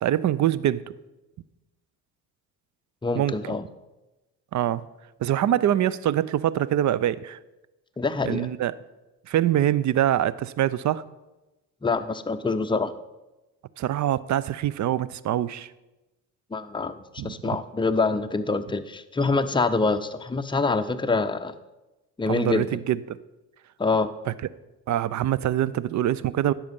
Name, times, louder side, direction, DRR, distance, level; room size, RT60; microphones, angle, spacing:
voice 1, 0.0-0.8 3.1-3.3 4.5-4.8 5.2-7.4 8.3-8.7 9.3-11.0 13.8-15.7 17.2-17.6 22.3-23.2 24.9-26.5, right 11 dB, 40° right, 19 dB, 0.5 m, -24 dB
voice 2, 3.0-3.7 8.0-8.5 11.8-12.9 16.5-21.5 22.2-22.7 23.8-24.1, left 3 dB, 10° left, 9 dB, 0.6 m, -25 dB
10.5 x 7.3 x 5.3 m, 1.0 s
hypercardioid pair, 50°, 48 cm